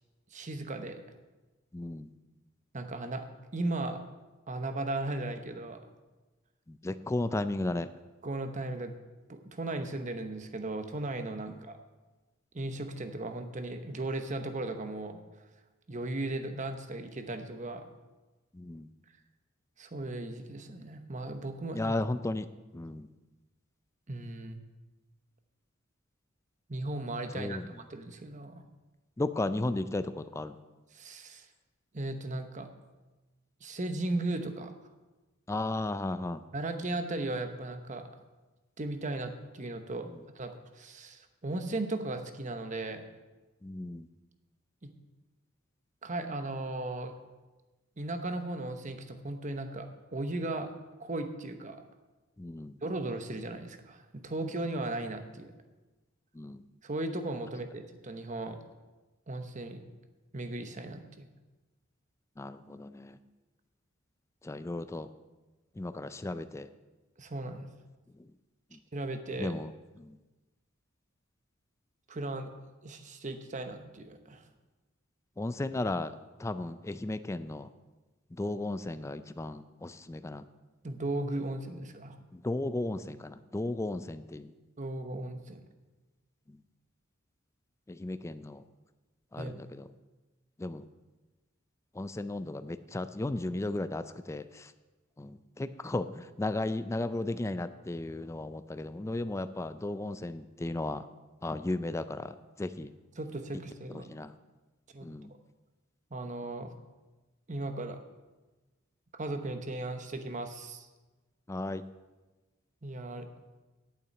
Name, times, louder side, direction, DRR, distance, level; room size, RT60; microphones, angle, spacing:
voice 1, 0.3-1.0 2.7-3.2 3.5-4.0 4.5-5.8 8.2-8.9 9.3-11.8 12.5-15.2 15.9-17.8 19.8-21.9 24.1-24.6 26.7-27.6 27.9-28.6 30.9-31.5 31.9-32.7 33.6-34.7 36.5-38.0 38.8-40.1 40.3-43.1 44.8-44.9 46.0-47.1 48.0-49.9 50.1-50.7 51.0-51.8 52.8-55.5 56.8-58.6 59.3-59.8 60.3-61.3 67.2-67.7 68.9-69.6 72.1-72.5 72.8-74.4 80.8-82.2 84.8-85.6 89.4-89.5 103.2-104.1 104.9-105.1 106.1-106.7 107.5-108.0 109.1-110.9 112.8-113.3, right 2 dB, 35° right, 7 dB, 0.9 m, -36 dB
voice 2, 1.7-2.1 6.7-7.9 18.5-18.9 21.7-22.5 22.7-23.1 27.3-27.6 29.2-30.6 35.5-36.4 43.6-44.1 52.4-52.8 56.4-56.6 62.4-63.2 64.4-65.1 65.8-66.7 68.7-68.8 69.4-69.7 70.0-70.2 75.4-76.1 76.4-77.7 78.3-80.5 82.3-84.5 87.9-88.6 89.3-89.9 90.6-90.8 92.0-94.7 95.2-101.0 101.4-102.9 104.1-104.3 105.0-105.3 111.5-111.8, left 2 dB, 15° left, 12 dB, 0.3 m, -35 dB
8.7 x 6.9 x 8.7 m, 1.2 s
head